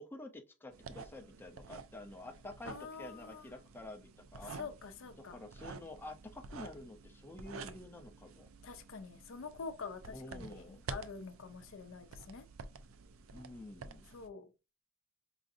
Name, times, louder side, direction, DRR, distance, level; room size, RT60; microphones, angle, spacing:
voice 1, 0.0-4.7 5.3-8.5 10.1-10.8 13.3-14.0, left 2 dB, 10° left, 0.5 m, -49 dB
sound 1, 0.7-14.3, right 4 dB, 70° right, 0.4 m, -50 dB
voice 2, 2.6-3.5 4.5-5.4 8.6-12.5 14.1-14.5, left 5 dB, 65° left, 0.5 m, -46 dB
4.8 x 2.5 x 2.6 m
head